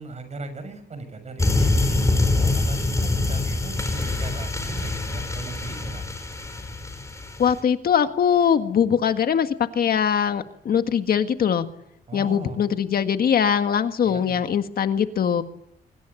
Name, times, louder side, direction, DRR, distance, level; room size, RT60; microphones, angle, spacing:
voice 1, 0.0-6.0 12.1-12.6 14.0-14.4, right 3 dB, 40° right, 10 dB, 6.6 m, -38 dB
sound 1, 1.4-7.6, left 2 dB, 15° left, 4.8 m, -24 dB
voice 2, 7.4-11.7 12.1-15.4, left 8 dB, 60° left, 8 dB, 1.7 m, -22 dB
25.0 x 23.5 x 8.4 m, 0.78 s
wide cardioid pair, 150°, 17 cm